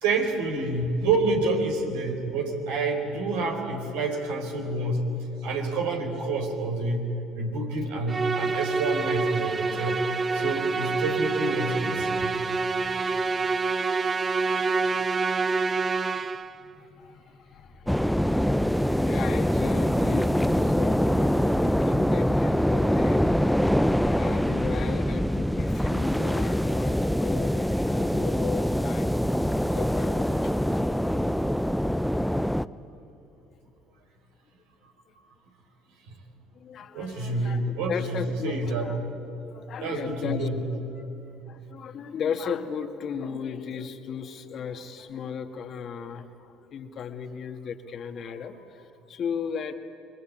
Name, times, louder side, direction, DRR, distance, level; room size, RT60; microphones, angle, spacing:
voice 1, 0.0-5.0 5.4-7.1 7.4-10.0 10.3-12.3 36.9-38.9 39.8-40.6, right 3 dB, 75° right, 2 dB, 4.4 m, -28 dB
Musical instrument, 8.1-16.6, right 4 dB, 30° right, 0.9 m, -27 dB
voice 2, 16.5-18.3 19.0-23.2 24.1-31.2 36.5-39.0 39.5-40.5 41.5-49.7, left 6 dB, 50° left, 6 dB, 2.1 m, -36 dB
sound 1, 17.9-32.7, equal, ahead, 0.7 m, -24 dB
27.0 x 23.0 x 8.9 m, 2.9 s
hypercardioid pair, 60°, 0 cm